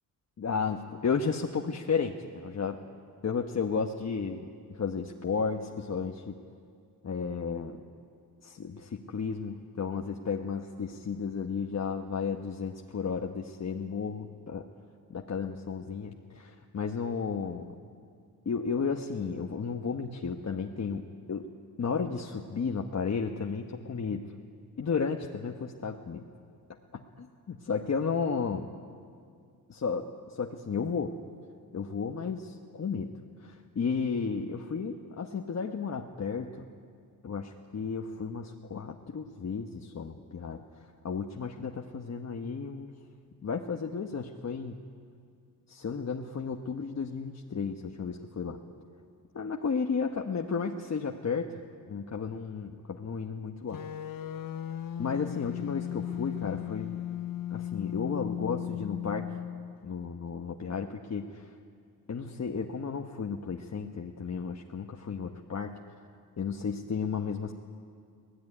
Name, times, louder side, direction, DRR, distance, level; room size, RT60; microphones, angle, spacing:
voice 1, 0.4-2.8 3.2-6.4 7.0-7.8 8.4-14.7 15.1-17.7 18.4-21.5 21.8-24.2 24.8-26.2 26.9-28.7 29.7-31.1 31.7-36.7 37.2-40.6 41.0-43.0 43.4-44.8 45.7-48.6 49.3-51.5 51.9-53.8 55.0-57.0 57.5-59.3 59.8-61.5 62.1-65.8 66.4-67.5, left 5 dB, 40° left, 2 dB, 1.2 m, -33 dB
sound 1, 53.7-59.8, left 11 dB, 60° left, 0.9 m, -36 dB
26.0 x 18.5 x 9.9 m, 2.3 s
wide cardioid pair, 120°, 39 cm